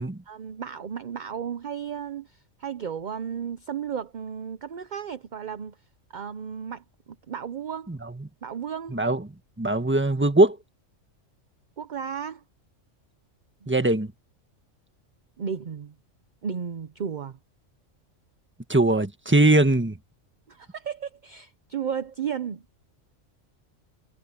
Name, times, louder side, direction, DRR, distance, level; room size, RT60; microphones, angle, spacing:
voice 1, 0.3-5.8 6.1-6.8 7.3-7.9 8.4-9.0 11.8-12.4 13.6-13.7 15.4-15.9 16.4-17.4 20.5-22.6, right 7 dB, 45° right, 0.7 m, -34 dB
voice 2, 7.9-8.3 8.9-9.2 9.6-10.6 13.7-14.1 18.7-20.0, right 2 dB, 10° right, 1.3 m, -21 dB
omnidirectional pair, 1.3 m